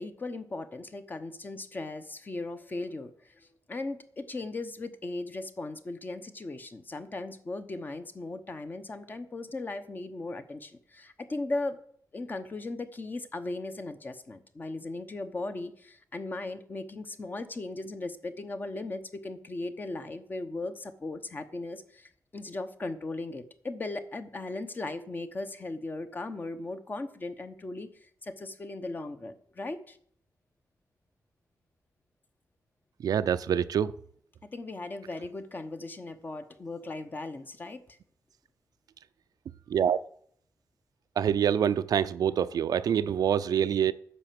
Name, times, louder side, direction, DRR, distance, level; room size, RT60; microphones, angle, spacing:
voice 1, 0.0-3.1 3.4-11.8 12.1-27.9 28.2-30.0 34.5-37.8, left 2 dB, 30° left, 1.0 m, -37 dB
voice 2, 33.0-33.9 39.7-40.0 41.2-43.9, right 8 dB, 85° right, 0.5 m, -25 dB
9.9 x 6.9 x 7.6 m
wide cardioid pair, 155°, 6 cm